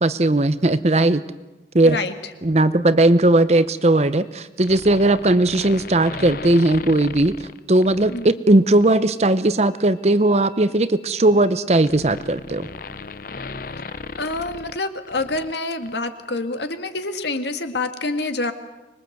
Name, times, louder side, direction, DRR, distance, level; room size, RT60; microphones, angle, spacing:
voice 1, 0.0-1.2 1.7-2.0 2.4-12.7, right 2 dB, 35° right, 14 dB, 0.8 m, -18 dB
sound 1, 4.6-8.3 8.8-9.0 10.2-15.6 15.8-15.9, left 4 dB, 50° left, 0.8 m, -36 dB
voice 2, 14.2-18.5, left 2 dB, 70° left, 8 dB, 1.9 m, -27 dB
25.0 x 21.5 x 7.9 m, 1.1 s
head